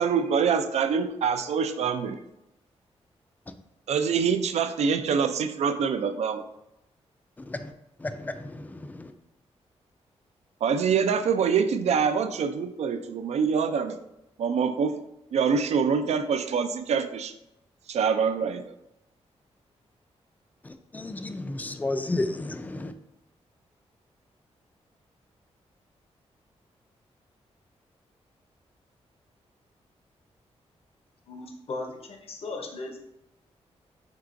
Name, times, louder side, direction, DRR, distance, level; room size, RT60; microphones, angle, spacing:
voice 1, 0.0-2.1 3.9-6.4 10.6-14.0 14.4-15.0 15.3-17.3 17.9-18.7, right 6 dB, 70° right, 9 dB, 0.4 m, -25 dB
voice 2, 8.0-9.1 20.6-22.9, left 2 dB, 15° left, 9 dB, 0.3 m, -32 dB
voice 3, 31.3-33.0, left 3 dB, 60° left, 2 dB, 0.7 m, -37 dB
4.5 x 3.7 x 2.5 m, 0.87 s
cardioid pair, 100°, 11 cm